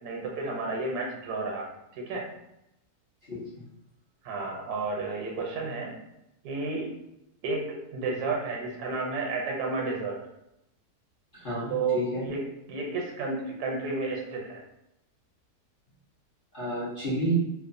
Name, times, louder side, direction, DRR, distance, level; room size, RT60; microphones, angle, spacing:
voice 1, 0.0-2.2 4.2-5.9 6.4-6.9 7.4-10.2 11.7-12.4 12.7-14.6, right 3 dB, 75° right, -1 dB, 1.1 m, -32 dB
voice 2, 11.3-12.3 16.5-17.4, right 2 dB, 45° left, -11 dB, 0.7 m, -30 dB
2.9 x 2.0 x 2.5 m, 0.85 s
omnidirectional pair, 1.7 m